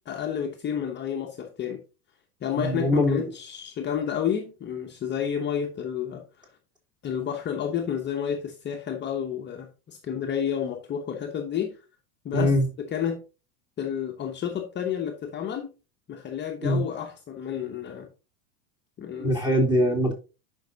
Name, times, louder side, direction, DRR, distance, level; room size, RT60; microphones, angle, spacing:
voice 1, 0.1-1.8 2.4-6.5 7.0-11.8 12.2-12.5 12.9-13.2 13.8-15.7 16.1-18.1 19.0-19.4, left 8 dB, 25° left, 0.9 m, -30 dB
voice 2, 2.5-3.3 12.3-12.7 16.6-16.8 19.2-20.1, left 1 dB, 10° right, 3.2 m, -22 dB
10.5 x 5.4 x 2.7 m
hypercardioid pair, 110°, 41 cm